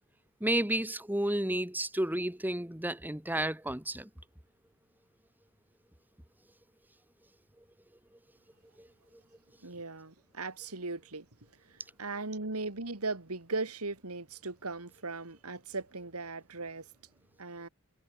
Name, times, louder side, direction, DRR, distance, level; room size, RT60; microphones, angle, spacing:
voice 1, 0.4-4.1 8.8-8.9, right 1 dB, 10° right, 2.0 m, -31 dB
voice 2, 9.6-11.3 11.7-16.9 17.4-17.7, right 3 dB, 80° right, 2.7 m, -38 dB
head